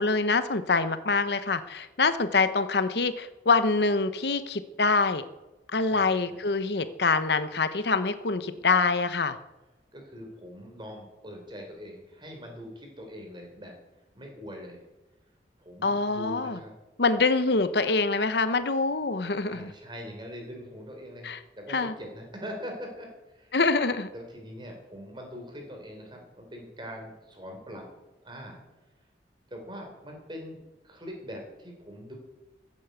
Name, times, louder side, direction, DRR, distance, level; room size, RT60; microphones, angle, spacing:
voice 1, 0.0-5.2 5.7-9.4 15.8-16.6 17.0-19.7 21.2-21.4 21.7-21.9 23.5-24.1, left 4 dB, 70° left, 12 dB, 0.9 m, -25 dB
voice 2, 5.9-6.4 9.9-13.7 14.1-14.8 15.6-16.7 19.5-23.6 24.1-27.9 28.2-28.6 29.5-30.6 30.8-32.1, equal, 25° right, 2 dB, 4.0 m, -42 dB
15.0 x 8.5 x 8.1 m, 1.1 s
head